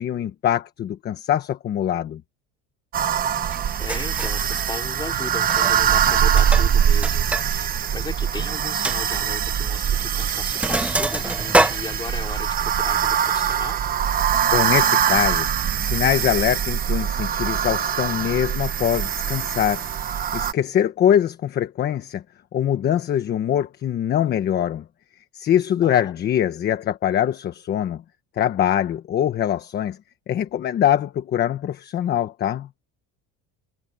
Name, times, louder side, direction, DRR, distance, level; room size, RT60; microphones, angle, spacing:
voice 1, 0.0-2.2 14.5-15.5 15.8-19.8 20.1-22.2 22.5-24.8 25.3-28.0 28.4-30.0 30.3-32.7, left 10 dB, 35° left, 1.2 m, -23 dB
sound 1, 2.9-20.5, right 9 dB, 30° right, 1.2 m, -23 dB
Sink (filling or washing), 3.5-3.6 3.9-4.4 5.4-5.8 6.1-7.5 7.8-7.9 8.3-8.4 8.8-9.0 9.9-10.1 10.3-12.5, right 2 dB, 5° right, 0.8 m, -24 dB
voice 2, 3.8-13.8 25.8-26.1, left 4 dB, 15° left, 4.6 m, -36 dB
cardioid pair, 170°, 30 cm